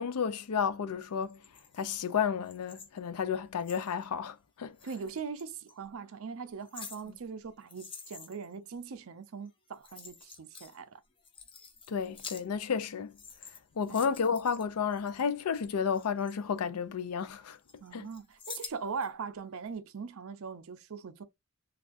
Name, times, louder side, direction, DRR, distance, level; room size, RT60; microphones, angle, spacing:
voice 1, 0.0-1.4 1.7-4.8 11.9-13.1 13.8-17.6 17.9-18.1, left 6 dB, 85° left, 0.4 m, -32 dB
sound 1, 1.2-4.1 4.8-5.7 6.3-8.6 9.5-9.6 9.7-10.8 11.1-12.8 13.1-15.2 15.7-17.1 17.5-19.1 19.5-19.6, left 5 dB, 25° left, 0.6 m, -49 dB
voice 2, 4.8-11.0 13.9-14.0 17.8-21.2, right 5 dB, 65° right, 0.5 m, -41 dB
3.3 x 2.3 x 2.5 m
head